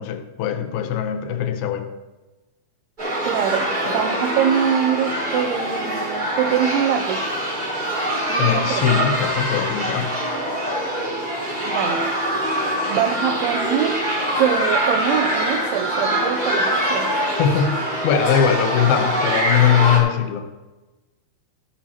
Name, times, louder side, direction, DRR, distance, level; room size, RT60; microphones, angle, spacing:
voice 1, 0.0-1.9 8.4-10.2 17.4-17.8 18.0-20.5, left 9 dB, 75° left, 2.6 m, -21 dB
sound 1, 3.0-20.0, right 1 dB, 10° right, 3.7 m, -24 dB
voice 2, 3.2-7.3 8.3-8.9 11.7-12.1 12.9-14.1 14.3-17.1, right 9 dB, 85° right, 2.6 m, -23 dB
17.5 x 7.5 x 2.8 m
omnidirectional pair, 4.5 m